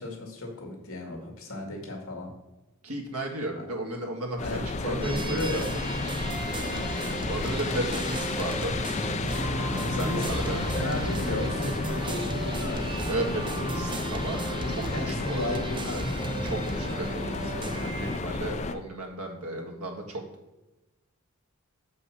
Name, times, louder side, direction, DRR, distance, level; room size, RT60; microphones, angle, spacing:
voice 1, 0.0-2.3 3.5-3.6 4.4-5.8 6.7-7.0 9.8-10.3 10.7-13.0 14.6-16.9, left 2 dB, 70° left, 1 dB, 2.2 m, -34 dB
voice 2, 2.8-4.4 4.8-5.7 7.3-8.8 9.6-10.6 13.1-14.8 15.1-15.6 16.4-20.2, right 1 dB, 80° right, 2 dB, 1.8 m, -34 dB
sound 1, 4.4-18.7, left 3 dB, 30° left, 0.4 m, -32 dB
sound 2, 5.0-18.2, right 2 dB, 20° right, 0.6 m, -35 dB
sound 3, 8.9-15.7, right 1 dB, 55° right, 0.8 m, -41 dB
7.2 x 5.5 x 5.9 m, 1.1 s
head